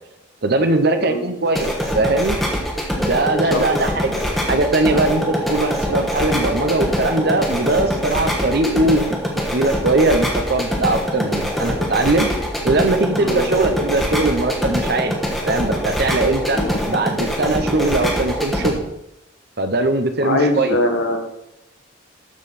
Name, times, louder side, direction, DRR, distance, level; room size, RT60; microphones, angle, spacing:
voice 1, 0.4-2.4 3.0-9.0 9.5-12.3 12.6-15.2 15.5-18.9 19.6-20.8, right 2 dB, 55° right, 8 dB, 0.9 m, -20 dB
sound 1, 1.4-18.7, equal, ahead, 1.2 m, -23 dB
voice 2, 20.2-21.2, left 1 dB, 70° left, 4 dB, 1.6 m, -21 dB
12.5 x 5.6 x 4.2 m, 0.86 s
head